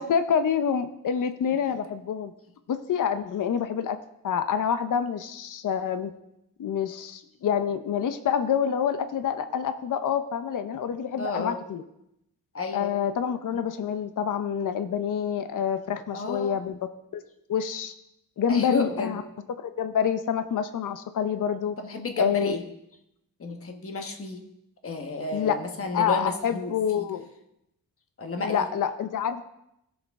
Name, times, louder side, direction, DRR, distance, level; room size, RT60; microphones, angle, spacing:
voice 1, 0.0-2.3 2.7-4.0 4.2-6.1 6.6-11.8 12.7-16.8 17.1-17.2 17.5-17.9 18.4-19.2 19.6-21.8 22.2-22.5 25.3-25.5 25.9-27.2 28.4-29.4, left 8 dB, 65° left, 10 dB, 0.7 m, -27 dB
voice 2, 11.2-11.6 12.5-13.0 16.1-16.6 18.5-19.2 21.8-22.6 23.4-24.4 24.8-27.1 28.2-28.7, left 3 dB, 40° left, 5 dB, 1.2 m, -32 dB
16.5 x 6.5 x 3.6 m, 0.82 s
wide cardioid pair, 150°, 34 cm